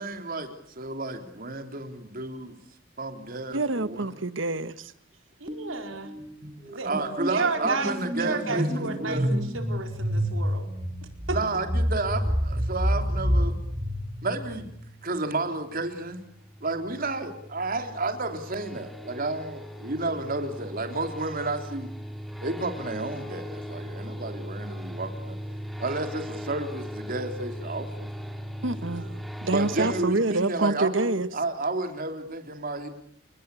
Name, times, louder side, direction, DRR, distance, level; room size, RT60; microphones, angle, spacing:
voice 1, 0.0-2.5 3.0-4.1 6.8-9.3 11.3-13.6 14.2-14.7 15.0-16.2 16.6-21.9 22.4-25.4 25.8-28.1 29.5-31.1 31.3-32.9, right 2 dB, 45° right, 3.5 m, -31 dB
voice 2, 3.5-4.9 28.6-29.1 29.4-31.3, right 2 dB, 70° right, 1.4 m, -27 dB
voice 3, 5.4-6.1 6.7-6.9 7.2-7.9 8.2-10.7 11.3-11.4 29.0-29.1, right 3 dB, 90° right, 4.6 m, -32 dB
sound 1, 5.5-5.8 6.1-14.8, equal, 25° right, 2.4 m, -28 dB
sound 2, 15.5-30.0, equal, ahead, 2.5 m, -39 dB
30.0 x 20.0 x 8.4 m
head